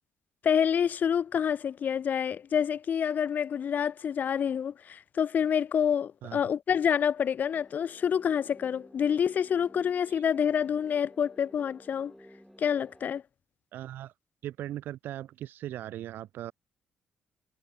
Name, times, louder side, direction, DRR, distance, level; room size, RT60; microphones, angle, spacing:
voice 1, 0.4-12.1 12.6-13.2, left 8 dB, 50° left, 0.9 m, -27 dB
sound 1, 7.5-13.2, equal, ahead, 3.3 m, -54 dB
voice 2, 13.7-14.1 14.4-16.5, right 13 dB, 65° right, 1.7 m, -39 dB
hypercardioid pair, 45°, 4 cm